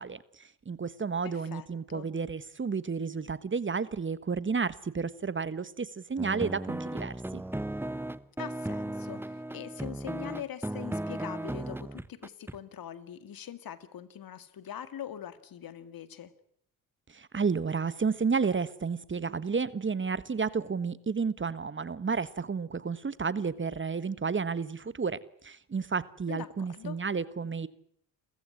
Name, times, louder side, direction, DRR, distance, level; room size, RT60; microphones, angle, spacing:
voice 1, 0.0-7.4 17.1-27.7, right 5 dB, 30° right, 1.4 m, -31 dB
voice 2, 1.2-2.1 8.4-16.3 26.3-27.0, left 10 dB, 60° left, 2.3 m, -43 dB
sound 1, 6.2-12.6, right 1 dB, 5° right, 1.0 m, -36 dB
29.0 x 15.0 x 9.8 m
supercardioid pair, 60°, 40 cm